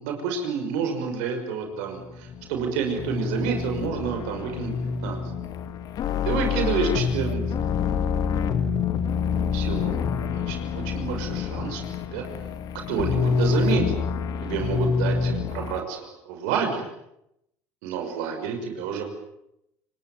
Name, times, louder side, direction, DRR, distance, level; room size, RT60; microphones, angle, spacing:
voice 1, 0.0-4.7 5.0-5.2 6.2-7.4 9.5-10.0 10.3-11.8 12.1-12.2 12.9-13.8 14.4-16.8 17.8-19.0, right 6 dB, 80° right, 4 dB, 5.8 m, -29 dB
sound 1, 2.0-15.8, left 6 dB, 55° left, 2.5 m, -27 dB
30.0 x 19.5 x 9.4 m, 0.83 s
supercardioid pair, 85°, 8 cm